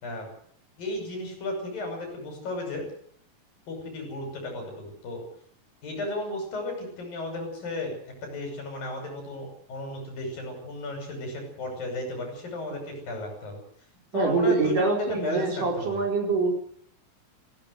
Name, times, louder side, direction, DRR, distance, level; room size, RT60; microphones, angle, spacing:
voice 1, 0.8-2.9 3.7-5.3 5.8-7.9 8.2-13.6 14.1-16.0, left 2 dB, 70° left, 4 dB, 7.9 m, -34 dB
voice 2, 14.1-16.5, right 3 dB, 60° right, 1 dB, 6.1 m, -25 dB
19.5 x 17.0 x 8.0 m, 0.62 s
omnidirectional pair, 4.2 m